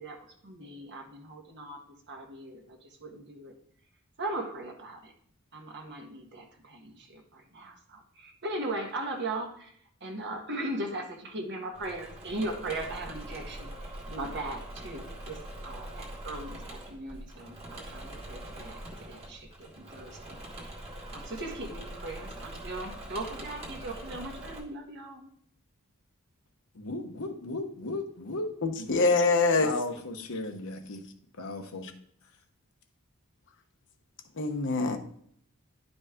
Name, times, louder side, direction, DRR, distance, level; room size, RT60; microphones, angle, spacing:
voice 1, 0.0-3.5 4.2-5.1 5.5-20.8 21.1-25.3, right 2 dB, 55° right, 1.4 m, -39 dB
Engine / Mechanisms, 11.7-24.6, right 1 dB, 30° right, 1.7 m, -43 dB
voice 2, 26.7-28.9 29.6-31.0 31.4-31.9, left 2 dB, 75° left, 1.2 m, -36 dB
voice 3, 28.6-29.7 34.4-35.0, left 3 dB, 60° left, 0.9 m, -24 dB
10.5 x 5.2 x 3.7 m
head